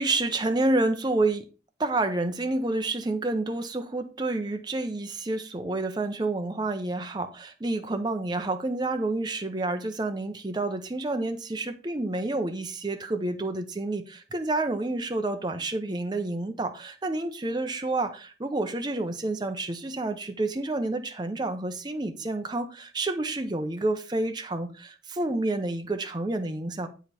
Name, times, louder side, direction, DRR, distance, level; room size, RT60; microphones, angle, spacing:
voice 1, 0.0-1.4 1.8-26.9, right 2 dB, 25° right, 0.7 m, -29 dB
8.0 x 5.1 x 4.2 m
head